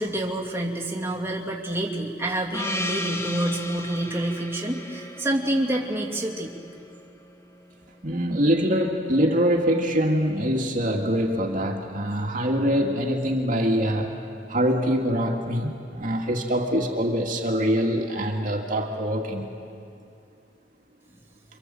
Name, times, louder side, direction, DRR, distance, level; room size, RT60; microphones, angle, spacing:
voice 1, 0.0-6.5, right 1 dB, 15° right, -3 dB, 2.6 m, -27 dB
Gong, 2.5-7.3, left 1 dB, 15° left, 1.3 m, -35 dB
voice 2, 8.0-14.1 14.5-19.5, equal, 45° right, 1 dB, 2.2 m, -24 dB
28.0 x 25.0 x 7.8 m, 2.5 s
head